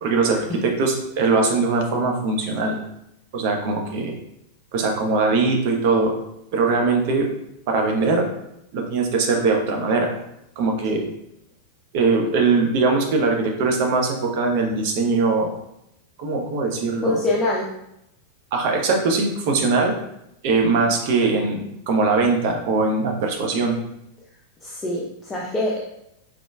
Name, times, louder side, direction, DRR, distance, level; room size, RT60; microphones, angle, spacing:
voice 1, 0.0-2.8 3.3-4.1 4.7-6.1 6.5-7.3 7.7-8.2 8.7-10.1 10.6-11.0 11.9-15.5 16.2-17.2 18.5-19.9 20.4-23.8, right 3 dB, 50° right, 2 dB, 0.8 m, -21 dB
voice 2, 17.0-17.7 24.6-25.8, left 1 dB, 15° left, -3 dB, 0.6 m, -24 dB
5.0 x 3.6 x 2.3 m, 0.81 s
figure-of-eight pair, 90°, 0 cm